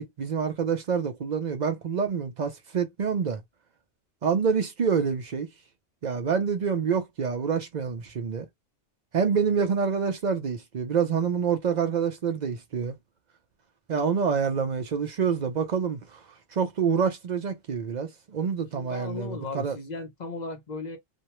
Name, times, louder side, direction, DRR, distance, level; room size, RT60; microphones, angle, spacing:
voice 1, 0.0-3.4 4.2-5.5 6.0-8.5 9.1-13.0 13.9-16.2 16.5-19.8, right 6 dB, 55° right, 0.5 m, -27 dB
voice 2, 18.7-21.0, left 3 dB, 45° left, 0.6 m, -36 dB
2.5 x 2.1 x 2.9 m
omnidirectional pair, 1.3 m